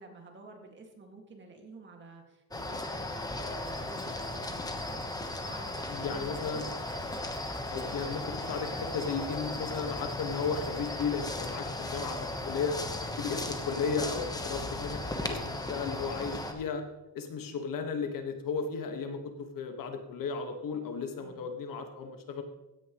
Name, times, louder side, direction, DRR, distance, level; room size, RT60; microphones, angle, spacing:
voice 1, 0.0-5.0 5.4-6.8 12.7-13.0 13.3-13.6 21.2-21.5, right 3 dB, 30° right, 2 dB, 2.1 m, -50 dB
sound 1, 2.5-16.5, left 2 dB, 10° left, 1.1 m, -36 dB
Domestic sounds home sounds, 3.6-10.9, right 1 dB, 15° right, 2.1 m, -58 dB
voice 2, 5.9-6.6 7.7-12.7 13.0-16.8 17.1-22.4, left 5 dB, 55° left, 5 dB, 1.6 m, -35 dB
16.5 x 10.0 x 3.1 m, 0.98 s
cardioid pair, 145°, 39 cm